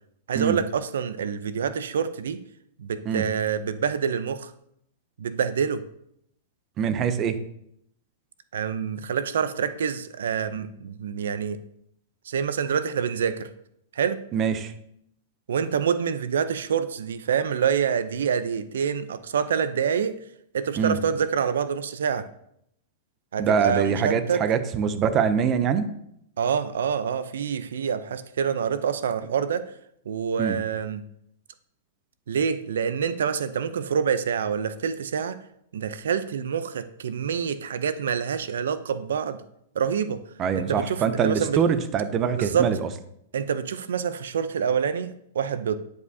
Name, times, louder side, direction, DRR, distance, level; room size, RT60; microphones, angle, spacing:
voice 1, 0.3-2.4 2.8-4.5 5.2-5.8 8.5-11.6 12.3-13.5 13.9-14.2 15.5-20.2 20.5-22.3 23.3-24.4 26.4-29.7 30.1-31.0 32.3-35.4 35.7-39.4 39.7-40.2 40.6-41.6 42.4-42.7 43.3-45.8, right 7 dB, 85° right, 13 dB, 0.5 m, -26 dB
voice 2, 6.8-7.4 14.3-14.7 20.8-21.0 23.4-25.8 30.4-30.6 40.4-42.9, right 7 dB, 25° right, 11 dB, 0.5 m, -24 dB
10.5 x 4.9 x 2.7 m, 0.74 s
supercardioid pair, 155°, 0 cm